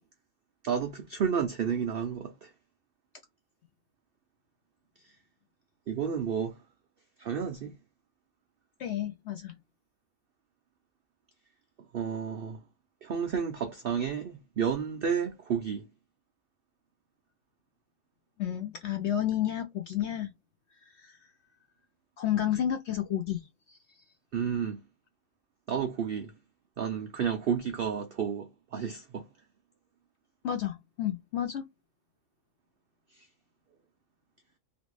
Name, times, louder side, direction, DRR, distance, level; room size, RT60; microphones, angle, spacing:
voice 1, 0.6-2.5 5.9-6.6 7.2-7.7 11.9-12.6 13.0-15.8 24.3-24.8 25.7-26.3 26.8-29.3, right 7 dB, 80° right, 0.5 m, -31 dB
voice 2, 8.8-9.6 18.4-20.3 21.0-21.1 22.2-23.4 30.4-31.6, left 11 dB, 70° left, 0.6 m, -31 dB
3.0 x 2.6 x 3.1 m
omnidirectional pair, 1.6 m